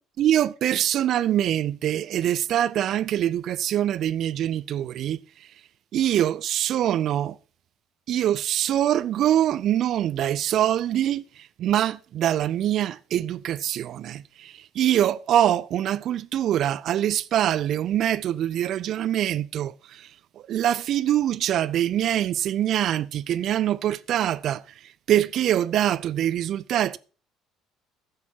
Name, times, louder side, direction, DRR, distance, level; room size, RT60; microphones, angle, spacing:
voice 1, 0.2-5.5 5.9-7.4 8.1-20.1 20.5-27.0, right 11 dB, 50° right, 0.4 m, -24 dB
11.5 x 6.9 x 5.8 m
figure-of-eight pair, 55°, 0 cm